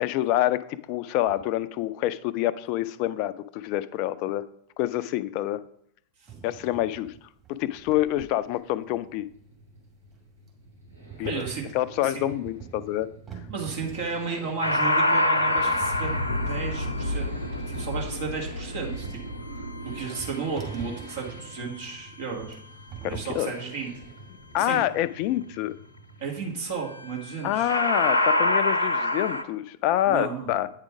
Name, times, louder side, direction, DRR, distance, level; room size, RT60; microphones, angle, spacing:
voice 1, 0.0-4.4 4.8-5.6 6.4-7.1 7.6-9.3 11.2-11.5 11.7-13.1 23.0-23.5 24.5-25.7 27.4-30.7, left 14 dB, 45° left, 14 dB, 0.4 m, -27 dB
sound 1, 6.3-24.6, right 7 dB, 25° right, 2.2 m, -45 dB
Accelerating revving vroom, 8.5-26.5 26.8-26.9, right 1 dB, 85° right, 3.7 m, -49 dB
voice 2, 11.2-11.7 12.0-12.2 13.5-16.2 16.5-17.3 17.7-22.6 23.0-23.9 24.6-24.8 26.2-27.7 30.1-30.5, right 5 dB, 55° right, -1 dB, 1.7 m, -33 dB
sound 2, 14.6-21.8 27.0-27.3 27.7-29.4, left 1 dB, 85° left, 0.8 m, -26 dB
8.9 x 5.0 x 4.9 m, 0.71 s
figure-of-eight pair, 90°, 0 cm